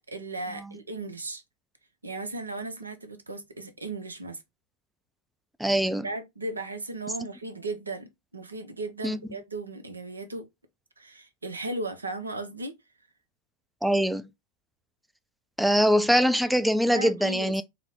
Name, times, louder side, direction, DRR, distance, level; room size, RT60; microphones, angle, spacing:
voice 1, 0.1-1.4 2.0-4.4 6.0-10.4 11.0-12.7 16.9-17.6, right 2 dB, 85° right, 0.6 m, -36 dB
voice 2, 5.6-6.1 9.0-9.2 13.8-14.3 15.6-17.6, equal, 5° right, 0.3 m, -23 dB
4.0 x 2.1 x 3.7 m
figure-of-eight pair, 90°, 0 cm